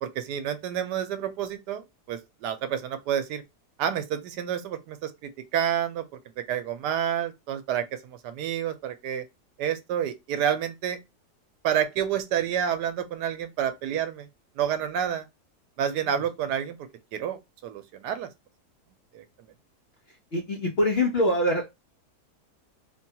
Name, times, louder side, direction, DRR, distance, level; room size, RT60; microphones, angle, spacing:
voice 1, 0.0-3.4 3.8-6.0 6.4-9.2 9.6-11.0 11.6-14.3 14.6-15.2 15.8-16.8 17.1-18.3 19.1-19.2, right 9 dB, 85° right, 1.2 m, -29 dB
voice 2, 20.3-21.7, left 1 dB, 50° left, 0.7 m, -24 dB
3.1 x 2.3 x 2.7 m
omnidirectional pair, 1.7 m